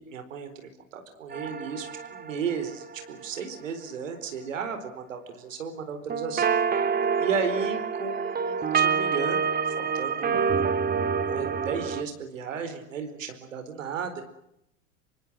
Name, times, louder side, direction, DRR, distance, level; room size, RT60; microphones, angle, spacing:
voice 1, 0.0-6.4 7.2-9.5 9.8-10.5 11.3-14.2, right 6 dB, 75° right, 8 dB, 4.5 m, -34 dB
sound 1, 1.3-3.4 6.1-12.0, right 6 dB, 25° right, 2.2 m, -27 dB
26.0 x 24.5 x 7.7 m, 0.79 s
hypercardioid pair, 90°, 39 cm